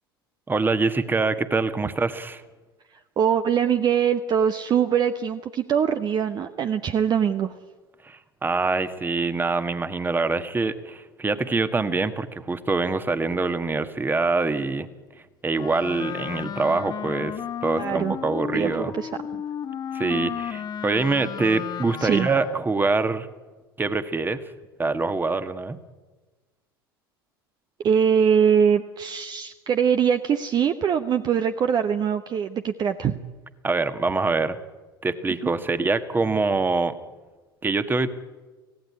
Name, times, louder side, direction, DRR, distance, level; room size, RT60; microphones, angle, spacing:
voice 1, 0.5-2.4 8.0-14.9 15.4-18.9 19.9-23.3 23.8-24.4 24.8-25.8 33.6-34.6 35.0-36.9 37.6-38.1, right 3 dB, 15° right, 11 dB, 1.6 m, -24 dB
voice 2, 3.2-7.5 17.8-18.1 18.5-19.4 22.0-22.3 27.8-33.1 35.4-35.5, right 7 dB, 35° right, 8 dB, 1.0 m, -22 dB
Wind instrument woodwind instrument, 15.5-22.8, left 9 dB, 35° left, 1.2 m, -33 dB
25.0 x 16.5 x 9.7 m, 1.3 s
figure-of-eight pair, 75°, 12 cm